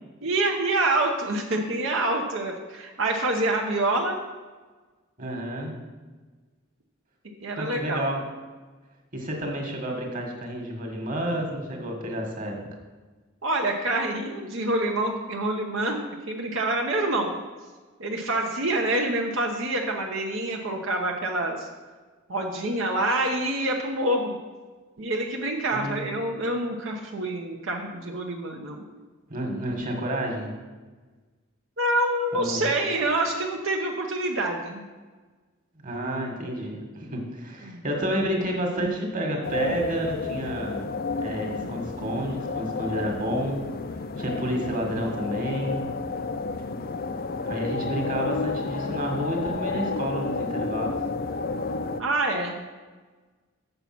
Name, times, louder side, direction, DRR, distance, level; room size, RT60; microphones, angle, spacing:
voice 1, 0.2-4.2 7.4-8.0 13.4-16.0 16.3-17.4 18.0-21.7 22.3-24.4 25.0-28.8 31.8-34.8 37.6-37.8 52.0-52.6, right 2 dB, 70° right, 1 dB, 0.9 m, -26 dB
voice 2, 5.2-5.8 7.6-8.2 9.1-12.6 25.7-26.1 29.3-30.6 32.3-32.6 35.8-40.8 41.2-43.6 44.2-45.9 47.4-50.9, right 1 dB, 40° right, 2 dB, 1.7 m, -30 dB
sound 1, 39.4-52.0, left 4 dB, 45° left, 0.4 m, -31 dB
7.1 x 6.7 x 6.0 m, 1.3 s
head